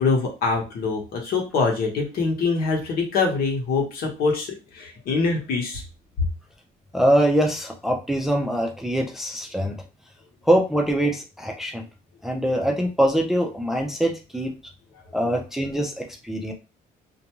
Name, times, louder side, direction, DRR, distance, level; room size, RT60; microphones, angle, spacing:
voice 1, 0.0-5.8, left 4 dB, 65° left, 1 dB, 1.0 m, -24 dB
voice 2, 6.9-9.7 10.5-11.8 12.2-14.5 15.1-16.5, right 1 dB, ahead, 1 dB, 0.5 m, -23 dB
2.5 x 2.3 x 2.9 m, 0.30 s
cardioid pair, 110°, 17 cm